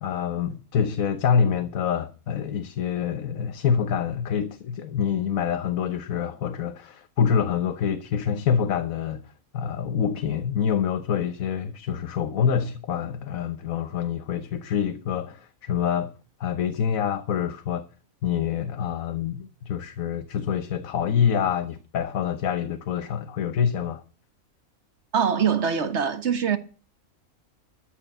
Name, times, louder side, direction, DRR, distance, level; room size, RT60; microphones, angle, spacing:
voice 1, 0.0-9.2 9.5-16.1 16.4-17.8 18.2-24.0, left 7 dB, 75° left, 1.3 m, -26 dB
voice 2, 25.1-26.6, right 7 dB, 55° right, 1.5 m, -23 dB
13.5 x 6.5 x 7.9 m
omnidirectional pair, 1.4 m